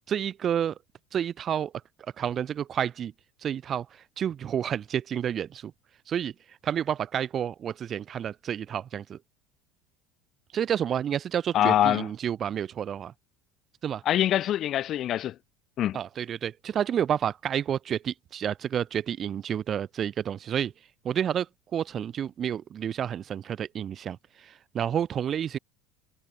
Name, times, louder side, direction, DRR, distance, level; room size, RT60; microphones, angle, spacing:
voice 1, 0.1-0.7 1.1-1.7 2.2-3.1 3.4-3.9 4.2-5.7 6.1-6.3 6.6-9.2 10.5-13.1 13.8-14.0 15.9-20.7 21.0-21.5 21.7-24.2 24.4-25.6, right 9 dB, 40° right, 0.3 m, -29 dB
voice 2, 11.5-12.1 14.1-15.3 15.8-16.0, left 12 dB, 50° left, 0.3 m, -24 dB
hypercardioid pair, 90°, 0 cm